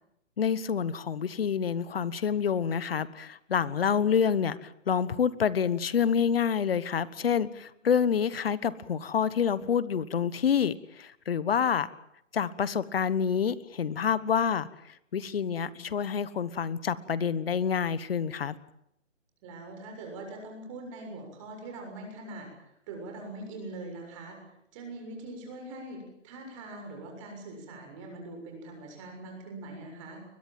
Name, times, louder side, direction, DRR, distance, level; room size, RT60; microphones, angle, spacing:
voice 1, 0.4-11.9 12.3-14.7 15.1-18.5, left 7 dB, 50° left, 17 dB, 1.3 m, -27 dB
voice 2, 19.4-22.5 22.9-24.4 24.7-30.3, right 2 dB, 25° right, 3 dB, 6.9 m, -42 dB
22.0 x 22.0 x 7.7 m, 0.78 s
hypercardioid pair, 155°, 38 cm